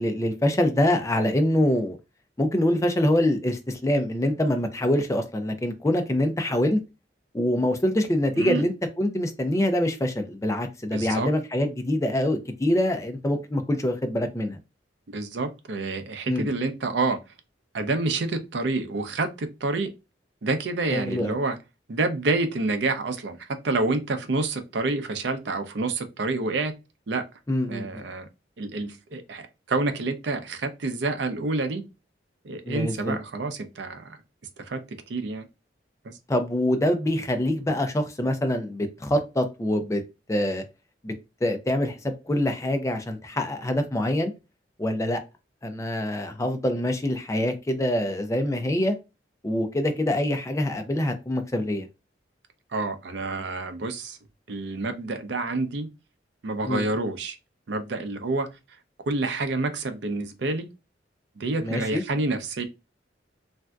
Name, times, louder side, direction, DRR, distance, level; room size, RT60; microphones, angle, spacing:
voice 1, 0.0-2.0 2.4-6.8 7.3-14.6 16.3-16.5 20.9-21.3 27.5-28.0 32.6-33.2 36.3-40.0 40.3-40.6 41.0-41.1 41.4-44.3 44.8-45.2 45.6-49.0 49.4-51.9 56.6-56.8 61.6-62.0, left 1 dB, 15° left, 0.4 m, -25 dB
voice 2, 10.9-11.3 15.1-17.2 17.7-19.9 20.4-21.6 21.9-26.7 27.1-27.2 27.7-28.3 28.6-31.8 32.4-34.2 34.6-34.8 35.1-35.5 36.0-36.1 52.7-54.2 54.5-55.9 56.4-57.4 57.7-58.5 59.1-60.7 61.4-62.6, right 3 dB, 70° right, 0.5 m, -28 dB
3.4 x 2.6 x 2.3 m
head